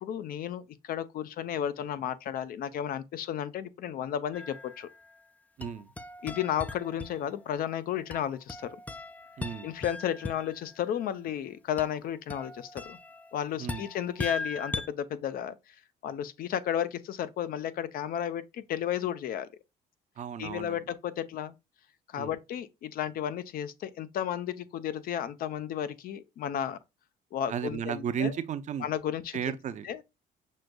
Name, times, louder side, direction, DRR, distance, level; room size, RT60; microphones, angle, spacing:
voice 1, 0.0-4.9 6.2-8.8 9.6-13.0 13.3-15.6 16.0-19.5 20.4-21.5 22.1-26.8 27.3-28.3 28.8-29.4 29.8-30.0, left 10 dB, 60° left, 0.5 m, -33 dB
sound 1, 4.3-5.2 5.6-7.6 8.1-10.7 11.8-14.9, left 3 dB, 10° left, 0.3 m, -40 dB
voice 2, 5.6-5.9 9.4-9.7 13.6-13.9 20.2-20.8 22.2-22.4 27.5-28.9 29.3-30.0, right 8 dB, 45° right, 0.5 m, -34 dB
6.3 x 2.6 x 2.2 m
cardioid pair, 110°, 17 cm